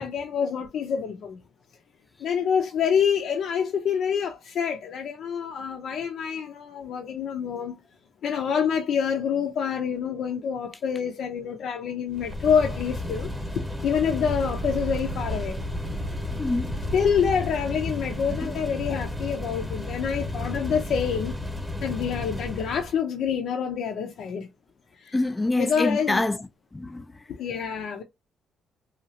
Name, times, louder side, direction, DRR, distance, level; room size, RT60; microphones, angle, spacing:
voice 1, 0.0-1.4 2.2-7.8 8.2-15.6 16.9-21.3 21.8-24.5 24.9-25.2 25.6-26.3 27.3-28.0, left 7 dB, 70° left, 0.5 m, -27 dB
sound 1, 12.1-23.0, left 1 dB, ahead, 0.9 m, -33 dB
sound 2, 12.3-12.4 12.8-13.3 13.6-17.6, right 4 dB, 80° right, 0.5 m, -38 dB
voice 2, 16.4-16.7 18.4-18.6 25.1-26.4 26.7-27.1, left 2 dB, 20° left, 0.4 m, -26 dB
2.8 x 2.3 x 2.8 m
cardioid pair, 90°, 0 cm